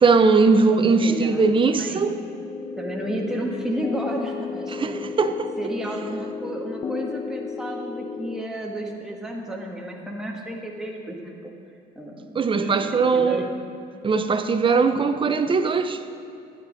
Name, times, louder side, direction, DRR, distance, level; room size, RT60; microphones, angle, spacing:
voice 1, 0.0-2.2 4.7-5.5 12.3-13.4 14.0-16.0, right 4 dB, 30° right, 9 dB, 0.7 m, -20 dB
voice 2, 0.7-2.0 2.8-5.0 5.6-11.5 11.9-13.5, right 1 dB, 5° right, -1 dB, 1.6 m, -32 dB
sound 1, 1.8-8.4, left 6 dB, 30° left, 0.4 m, -33 dB
13.0 x 9.4 x 5.2 m, 2.6 s
cardioid pair, 110°, 17 cm